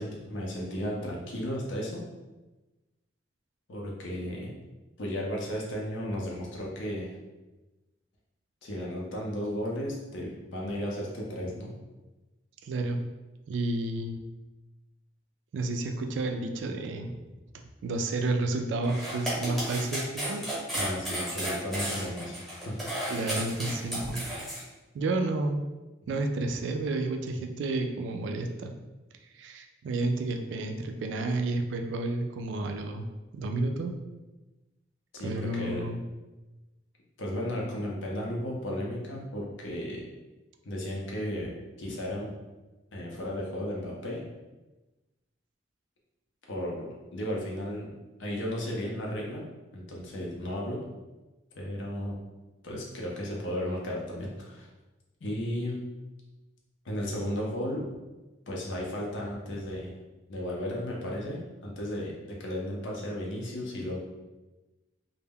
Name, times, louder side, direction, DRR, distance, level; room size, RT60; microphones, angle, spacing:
voice 1, 0.0-2.0 3.7-4.5 5.0-7.1 8.6-11.7 20.7-23.1 35.1-35.8 37.2-40.0 40.6-42.3 42.9-44.2 46.5-47.9 48.2-49.4 49.7-50.8 51.6-52.2 52.6-54.7 55.2-55.8 56.8-57.9 58.5-60.0 60.3-64.0, equal, 90° left, -3 dB, 0.6 m, -34 dB
voice 2, 12.6-13.0 13.5-14.2 15.5-17.1 17.8-20.5 23.1-24.3 24.9-25.6 26.1-28.7 29.3-33.0 33.3-33.9 35.2-36.0, right 2 dB, 80° right, 4 dB, 0.3 m, -31 dB
sound 1, 18.8-24.6, equal, ahead, 0.8 m, -33 dB
2.2 x 2.0 x 3.4 m, 1.1 s
head